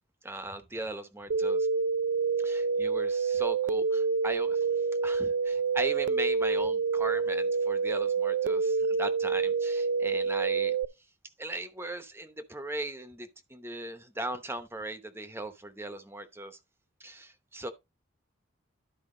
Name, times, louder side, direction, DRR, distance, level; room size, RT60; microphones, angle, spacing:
voice 1, 0.2-1.7 2.4-10.8 11.4-16.6 17.0-17.7, right 2 dB, 10° right, 0.8 m, -38 dB
sound 1, 1.3-10.9, right 5 dB, 60° right, 0.3 m, -27 dB
12.0 x 4.6 x 3.7 m
head